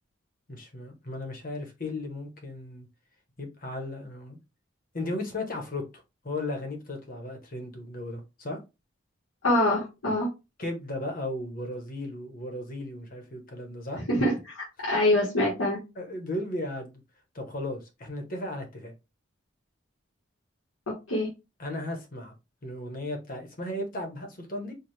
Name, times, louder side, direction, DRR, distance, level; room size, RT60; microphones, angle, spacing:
voice 1, 0.5-2.9 3.4-4.4 4.9-5.8 6.2-8.6 10.6-14.0 16.0-17.0 17.3-18.9 21.6-22.3 22.6-24.7, left 1 dB, 45° left, 1.0 m, -35 dB
voice 2, 9.4-10.3 14.1-15.8 21.1-21.3, left 1 dB, 85° left, 1.4 m, -25 dB
4.5 x 2.3 x 3.2 m
head